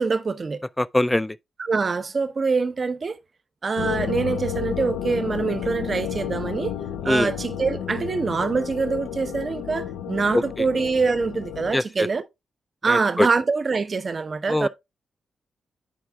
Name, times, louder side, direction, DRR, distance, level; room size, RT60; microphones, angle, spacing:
voice 1, 0.0-0.6 1.6-3.2 3.6-6.8 7.0-12.2 12.8-14.7, right 4 dB, 50° right, 0.7 m, -24 dB
voice 2, 0.8-1.4 7.0-7.3 10.3-10.7 11.7-12.1 12.9-13.3 14.5-14.7, left 1 dB, 15° left, 0.3 m, -22 dB
sound 1, 3.8-11.7, left 9 dB, 85° left, 0.5 m, -31 dB
13.0 x 4.7 x 2.3 m
supercardioid pair, 50°, 0 cm